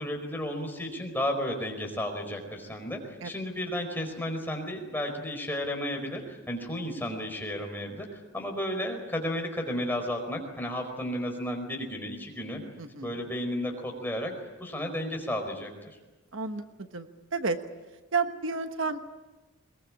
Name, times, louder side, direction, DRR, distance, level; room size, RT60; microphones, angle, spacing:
voice 1, 0.0-12.6 13.0-14.3 14.6-15.7, left 1 dB, 10° left, 3 dB, 4.7 m, -33 dB
voice 2, 12.8-13.2 16.3-17.6 18.1-19.0, right 4 dB, 65° right, 8 dB, 1.3 m, -31 dB
22.5 x 22.0 x 8.7 m, 1.1 s
head